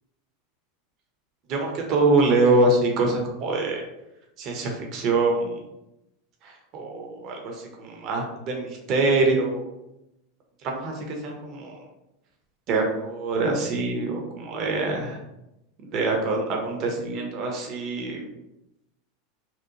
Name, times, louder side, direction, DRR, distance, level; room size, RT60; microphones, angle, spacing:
voice 1, 1.5-3.8 4.4-5.6 6.4-9.7 10.6-11.8 12.7-15.2 15.9-18.3, right 2 dB, 45° right, 1 dB, 0.5 m, -24 dB
2.8 x 2.1 x 2.5 m, 0.90 s
hypercardioid pair, 85°, 0 cm